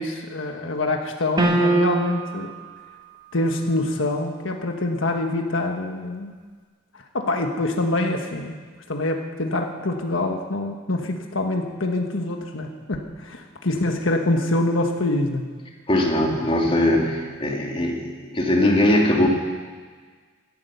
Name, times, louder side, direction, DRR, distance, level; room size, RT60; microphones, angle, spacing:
voice 1, 0.0-2.5 3.3-6.3 7.1-8.6 8.9-15.4, left 2 dB, 80° left, 3 dB, 1.5 m, -25 dB
sound 1, 1.4-2.4, right 2 dB, 20° right, 1.4 m, -20 dB
voice 2, 15.9-19.3, left 1 dB, 30° left, 0 dB, 2.5 m, -20 dB
17.0 x 12.5 x 6.9 m, 1.5 s
head